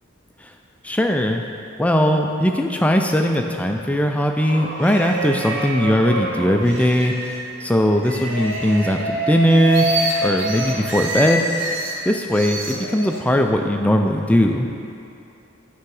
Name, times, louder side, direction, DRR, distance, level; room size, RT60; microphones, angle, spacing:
voice 1, 0.8-1.4 1.8-11.4 12.1-14.7, equal, 5° left, 3 dB, 0.3 m, -19 dB
sound 1, 4.4-7.5 8.0-12.0 12.3-13.2, right 1 dB, 70° right, 0.9 m, -26 dB
9.5 x 3.5 x 4.8 m, 2.6 s
head